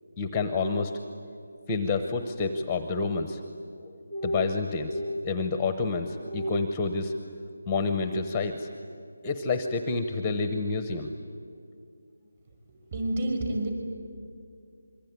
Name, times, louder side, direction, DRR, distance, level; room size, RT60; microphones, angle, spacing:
voice 1, 0.2-0.9 1.7-3.4 4.1-7.1 7.7-8.7 9.2-11.1, left 3 dB, 10° left, 7 dB, 0.9 m, -28 dB
voice 2, 12.9-13.7, right 1 dB, 35° right, 4 dB, 5.9 m, -28 dB
26.0 x 23.5 x 9.6 m, 2.4 s
figure-of-eight pair, 170°, 0 cm